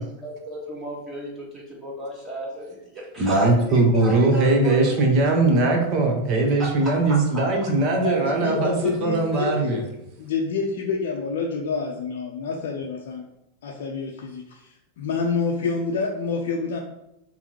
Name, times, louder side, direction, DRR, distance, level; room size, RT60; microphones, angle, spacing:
voice 1, 0.0-5.0 5.3-5.6 6.6-7.4, right 1 dB, 15° right, -4 dB, 1.7 m, -34 dB
voice 2, 3.2-9.8, right 2 dB, 40° right, 2 dB, 1.0 m, -20 dB
voice 3, 8.0-9.8 10.2-13.2 13.6-16.8, left 4 dB, 55° left, -1 dB, 0.6 m, -28 dB
5.5 x 2.1 x 4.5 m, 0.86 s
figure-of-eight pair, 90°, 0 cm